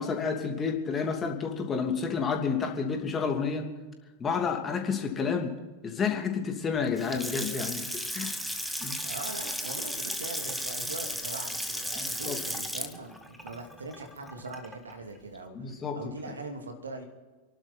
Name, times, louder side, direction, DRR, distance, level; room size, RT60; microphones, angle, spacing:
voice 1, 0.0-3.7 4.2-5.5 5.8-8.4 8.8-9.0 12.0-12.4 15.5-16.0, left 5 dB, 20° left, 3 dB, 2.7 m, -30 dB
Water tap faucet / Sink (filling or washing) / Splash splatter, 6.8-14.9, equal, ahead, 1.4 m, -35 dB
voice 2, 9.0-17.0, right 3 dB, 70° right, 5 dB, 2.5 m, -41 dB
28.5 x 12.0 x 4.1 m, 1.3 s
figure-of-eight pair, 90°, 0 cm